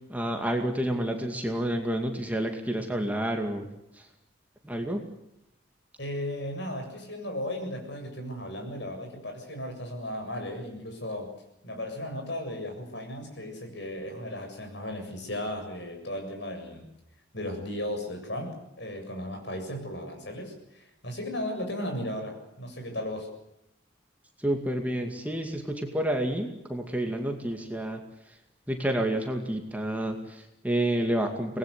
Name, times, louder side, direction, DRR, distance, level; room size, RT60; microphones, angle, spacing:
voice 1, 0.1-3.7 4.0-4.1 4.6-5.0 24.4-28.0 28.7-31.6, right 1 dB, 10° right, 3 dB, 2.3 m, -29 dB
voice 2, 6.0-11.3 11.6-16.9 17.3-23.3, left 1 dB, 60° left, 4 dB, 7.4 m, -35 dB
25.0 x 20.0 x 8.4 m, 0.86 s
head